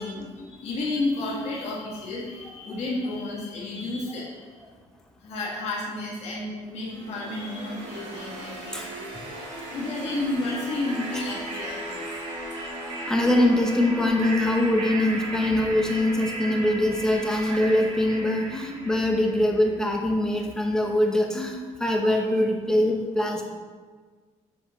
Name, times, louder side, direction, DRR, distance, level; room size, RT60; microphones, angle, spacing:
voice 1, 0.0-4.5 5.2-9.1 9.7-12.1 22.8-22.9, left 2 dB, 55° left, -5 dB, 1.5 m, -32 dB
sound 1, 6.9-19.8, right 2 dB, 65° right, 1.8 m, -36 dB
voice 2, 13.1-23.5, left 1 dB, 5° left, 1 dB, 0.7 m, -23 dB
7.5 x 5.3 x 3.1 m, 1.5 s
cardioid pair, 155°, 13 cm